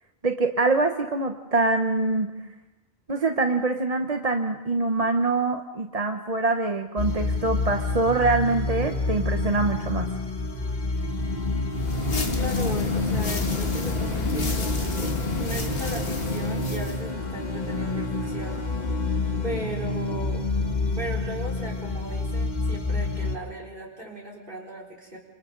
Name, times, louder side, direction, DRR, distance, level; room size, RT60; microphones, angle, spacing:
voice 1, 0.2-2.3 3.1-10.1, right 3 dB, 40° right, 5 dB, 1.0 m, -24 dB
sound 1, 7.0-23.3, left 3 dB, 45° left, 1.6 m, -28 dB
sound 2, 11.7-17.0, left 3 dB, 65° left, 1.9 m, -31 dB
voice 2, 12.1-18.9 19.4-20.4 21.0-25.2, right 1 dB, 55° right, -2 dB, 4.2 m, -37 dB
29.5 x 26.5 x 3.9 m, 1.0 s
omnidirectional pair, 1.1 m